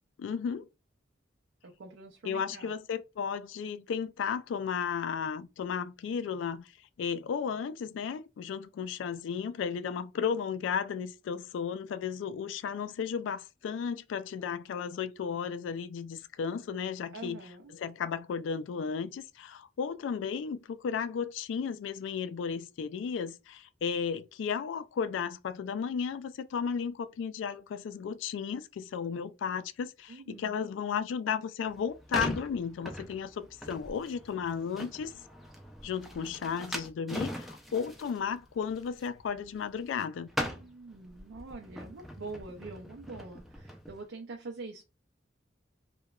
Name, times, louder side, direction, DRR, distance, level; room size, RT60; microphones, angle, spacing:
voice 1, 0.2-0.7 2.2-6.7 7.0-17.4 17.7-35.1 35.8-40.3, left 6 dB, 90° left, 0.3 m, -34 dB
voice 2, 1.6-2.7 17.1-17.7 30.1-30.6 40.5-44.8, right 3 dB, 85° right, 0.5 m, -45 dB
sound 1, 31.7-40.0 40.3-43.9, equal, ahead, 0.3 m, -41 dB
2.9 x 2.2 x 2.3 m
head